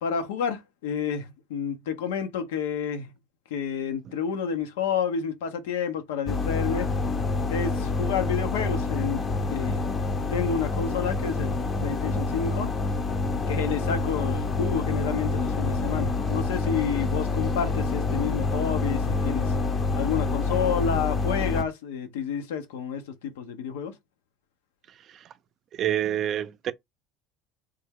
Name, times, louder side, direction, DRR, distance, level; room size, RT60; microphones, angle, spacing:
voice 1, 0.0-3.1 3.5-6.9 7.5-9.8 10.3-12.7 13.5-19.5 20.0-23.9, left 7 dB, 85° left, 0.7 m, -30 dB
sound 1, 6.2-21.6, left 3 dB, 30° left, 0.6 m, -27 dB
voice 2, 24.9-25.3 25.7-26.7, right 10 dB, 45° right, 0.4 m, -28 dB
3.3 x 2.2 x 3.4 m
supercardioid pair, 95°, 0 cm